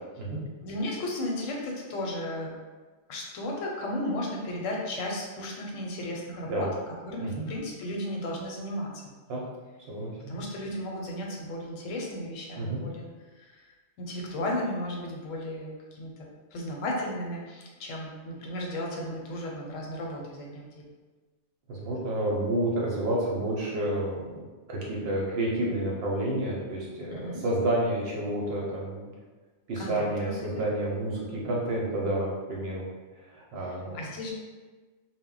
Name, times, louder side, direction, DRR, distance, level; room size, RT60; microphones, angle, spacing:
voice 1, 0.6-2.5 3.1-6.7 7.0-9.0 10.3-13.1 13.3-13.7 14.0-20.9 27.1-27.4 29.8-30.6 33.6-34.3, left 1 dB, 85° left, -1 dB, 1.0 m, -34 dB
voice 2, 9.9-10.4 12.6-12.8 21.7-29.1 29.7-32.9 33.3-34.0, right 1 dB, 60° right, -4 dB, 0.8 m, -30 dB
2.1 x 2.1 x 3.7 m, 1.3 s
omnidirectional pair, 1.3 m